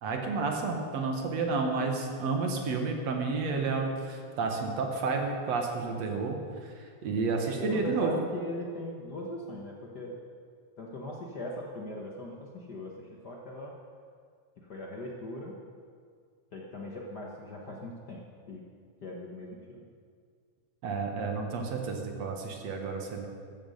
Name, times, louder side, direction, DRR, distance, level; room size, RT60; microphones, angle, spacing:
voice 1, 0.0-6.7 7.0-8.2 20.8-23.3, right 4 dB, 65° right, 3 dB, 2.6 m, -31 dB
voice 2, 7.4-10.2 10.8-13.7 14.6-15.6 16.5-18.6 19.0-19.9, left 1 dB, 50° left, -2 dB, 1.3 m, -40 dB
15.0 x 13.0 x 5.5 m, 2.1 s
omnidirectional pair, 3.3 m